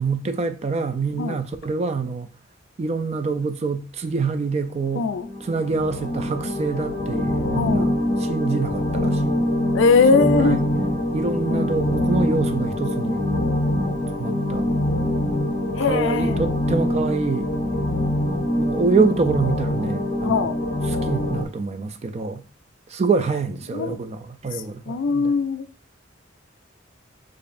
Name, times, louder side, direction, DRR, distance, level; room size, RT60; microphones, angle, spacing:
voice 1, 0.0-2.3 2.8-5.1 5.5-7.9 8.2-9.3 10.1-10.6 11.1-13.4 14.2-14.7 15.9-17.5 18.6-20.4 21.0-22.4 22.9-25.3, right 4 dB, 35° right, 0.3 m, -25 dB
voice 2, 5.0-5.3 7.6-7.9 9.7-10.6 11.5-11.7 15.8-16.4 20.2-20.6 23.7-24.0 24.5-25.7, left 4 dB, 75° left, 0.4 m, -21 dB
sound 1, 5.1-21.4, left 1 dB, 35° left, 0.7 m, -24 dB
6.7 x 2.5 x 2.5 m
head